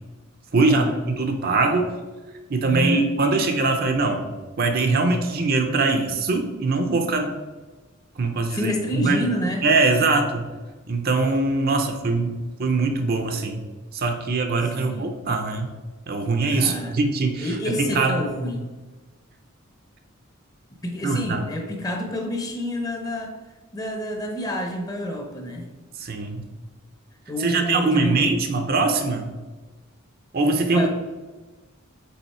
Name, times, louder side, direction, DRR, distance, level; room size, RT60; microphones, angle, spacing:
voice 1, 0.5-2.0 2.5-4.3 4.6-7.4 8.2-9.2 9.6-10.5 10.9-13.7 13.9-15.7 16.1-18.3 21.0-21.4 26.0-26.5 27.4-29.3 30.3-30.9, right 3 dB, 45° right, 5 dB, 0.5 m, -22 dB
voice 2, 2.6-3.1 8.5-9.7 14.8-15.2 16.5-16.9 17.4-18.7 20.8-23.4 23.7-25.7 27.3-28.3 30.7-30.9, left 1 dB, 15° left, 3 dB, 0.7 m, -28 dB
5.5 x 4.0 x 4.2 m, 1.2 s
head